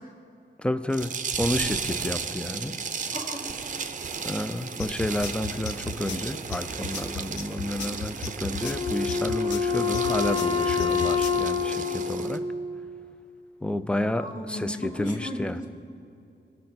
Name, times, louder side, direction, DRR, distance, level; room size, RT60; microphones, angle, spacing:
voice 1, 0.6-2.8 4.2-12.4 13.6-15.6, left 1 dB, 5° left, 12 dB, 0.3 m, -30 dB
sound 1, 0.9-12.4, right 5 dB, 45° right, 0.6 m, -34 dB
voice 2, 3.1-3.4 14.0-15.7, equal, 45° left, -1 dB, 1.9 m, -35 dB
sound 2, 4.8-11.4, left 5 dB, 75° left, 0.8 m, -35 dB
Wind instrument woodwind instrument, 8.6-13.1, left 5 dB, 25° left, 0.8 m, -27 dB
18.0 x 6.5 x 4.1 m, 2.7 s
wide cardioid pair, 140°, 19 cm